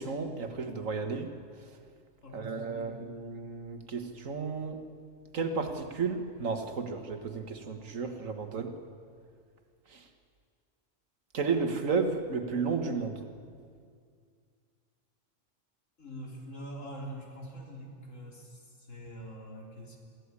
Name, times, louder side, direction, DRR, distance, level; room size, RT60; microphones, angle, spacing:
voice 1, 0.0-1.3 2.3-4.8 5.3-8.7 9.9-10.0 11.3-13.3, right 4 dB, 85° right, 7 dB, 2.0 m, -33 dB
voice 2, 2.2-2.9 16.0-20.0, right 1 dB, 75° left, 0 dB, 3.8 m, -44 dB
23.0 x 14.5 x 9.8 m, 2.2 s
omnidirectional pair, 1.3 m